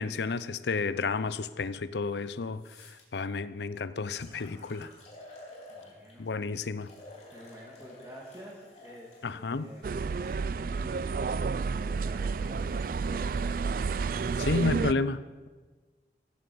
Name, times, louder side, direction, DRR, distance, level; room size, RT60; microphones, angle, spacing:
voice 1, 0.0-4.9 6.2-6.9 9.2-9.7 14.4-15.5, left 4 dB, 75° left, 15 dB, 0.6 m, -31 dB
sound 1, 2.0-2.1 2.5-3.0 3.7-3.8 4.2-6.3 6.8-10.4 11.3-14.7, left 2 dB, 40° left, 3.1 m, -53 dB
voice 2, 5.7-6.5 7.3-9.9 10.5-13.8, equal, 15° right, -5 dB, 2.3 m, -49 dB
sound 2, 9.8-14.9, right 5 dB, 50° right, 0.3 m, -30 dB
16.0 x 7.7 x 7.0 m, 1.4 s
head